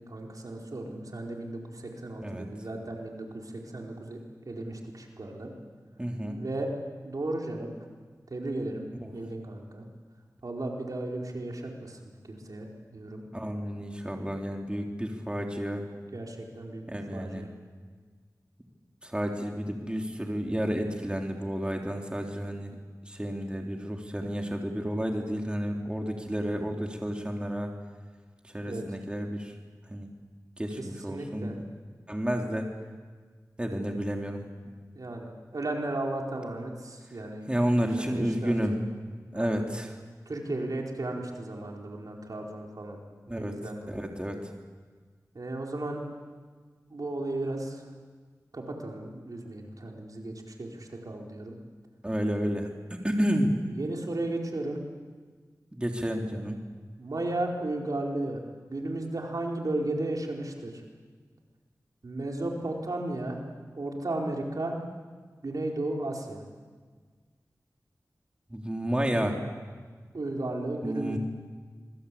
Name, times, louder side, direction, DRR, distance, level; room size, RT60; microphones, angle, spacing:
voice 1, 0.1-4.2 4.5-5.5 6.3-6.7 7.0-7.7 8.3-9.8 10.4-12.0 12.3-12.7 12.9-13.2 16.1-16.8 17.1-17.5 28.7-28.8 30.8-31.6 34.9-37.5 38.0-38.6 39.3-39.6 40.3-43.0 43.3-44.0 45.3-46.0 46.9-47.8 48.5-50.3 50.6-51.6 53.7-54.8 57.0-58.4 58.7-60.7 62.0-63.4 63.7-64.8 65.4-66.4 70.1-71.2, right 2 dB, 65° right, 0 dB, 4.6 m, -34 dB
voice 2, 6.0-6.4 9.0-9.1 13.3-15.8 16.9-17.4 19.0-22.7 23.1-27.7 28.5-29.5 29.9-30.1 30.6-31.6 32.1-32.6 33.6-34.4 37.5-38.7 39.3-39.9 43.3-43.5 43.9-44.4 52.0-53.5 55.7-56.6 68.5-69.4 70.8-71.2, equal, 15° right, 2 dB, 3.2 m, -31 dB
26.0 x 23.5 x 8.6 m, 1.5 s
wide cardioid pair, 55°, 7 cm